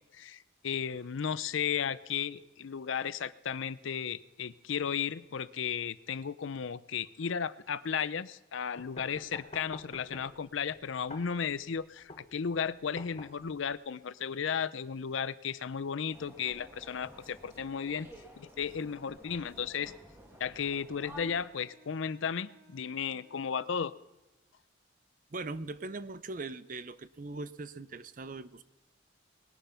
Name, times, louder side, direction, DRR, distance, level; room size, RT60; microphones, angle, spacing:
voice 1, 0.1-18.1 18.4-19.9 20.4-23.9, left 7 dB, 80° left, 16 dB, 0.5 m, -34 dB
sound 1, 8.8-13.8, left 2 dB, 35° left, 1.3 m, -48 dB
sound 2, 16.1-21.5, equal, 10° right, 1.6 m, -52 dB
Wind instrument woodwind instrument, 20.1-24.3, right 3 dB, 85° right, 2.3 m, -63 dB
voice 2, 25.3-28.6, right 3 dB, 40° right, 14 dB, 0.6 m, -40 dB
20.0 x 10.0 x 5.7 m, 1.0 s
head